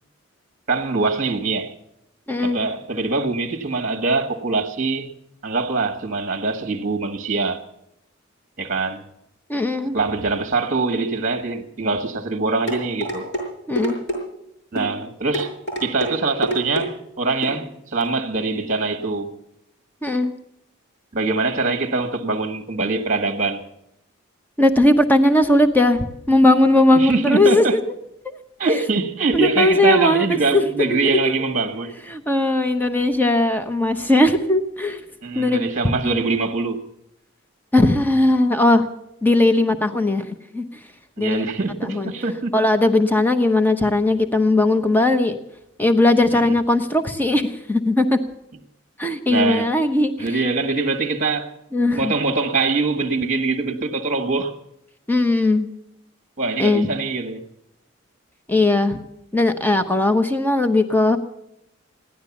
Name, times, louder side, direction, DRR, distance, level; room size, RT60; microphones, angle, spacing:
voice 1, 0.7-1.7 2.4-5.1 5.4-7.6 8.6-9.0 9.9-13.3 14.7-15.5 15.8-19.3 21.1-23.6 26.9-27.8 28.6-31.9 35.2-36.8 41.2-42.5 46.3-46.5 49.3-49.7 50.2-51.5 51.8-54.6 56.4-57.4, right 3 dB, 35° right, 1.4 m, -23 dB
voice 2, 2.3-2.6 9.5-10.0 13.7-14.0 20.0-20.3 24.6-28.0 28.6-28.9 29.3-30.6 30.9-31.1 32.1-35.0 35.3-35.6 36.0-36.2 37.7-38.9 39.2-40.7 41.2-41.4 41.8-42.1 42.5-45.4 45.8-48.2 49.0-50.3 51.7-52.1 55.1-55.7 56.6-56.9 58.5-59.0 59.3-61.2, left 2 dB, 10° left, 0.9 m, -18 dB
sound 1, 12.7-13.4 13.8-14.2 14.8-14.9 15.3-16.1 16.4-16.9 17.4-17.6 18.0-18.1, equal, 55° left, 6.5 m, -25 dB
16.5 x 12.0 x 7.1 m
head